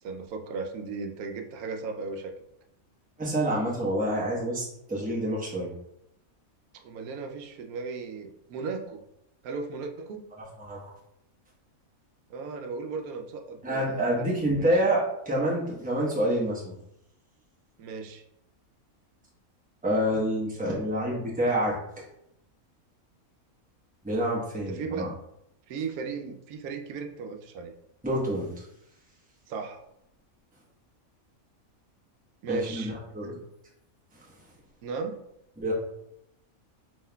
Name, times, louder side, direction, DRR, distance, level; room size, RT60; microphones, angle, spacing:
voice 1, 0.0-2.3 6.7-9.0 9.4-10.2 12.3-14.7 17.8-18.2 20.8-21.2 24.5-25.1 25.7-27.7 29.5-29.9 32.4-32.9 33.2-33.4 34.8-35.2, right 4 dB, 90° right, 5 dB, 1.0 m, -36 dB
voice 2, 3.2-5.7 10.6-10.8 13.6-16.6 19.8-21.8 24.0-25.1 28.0-28.6 32.5-33.3 35.6-35.7, right 1 dB, 5° right, -5 dB, 0.8 m, -27 dB
5.4 x 3.1 x 2.2 m, 0.81 s
omnidirectional pair, 1.5 m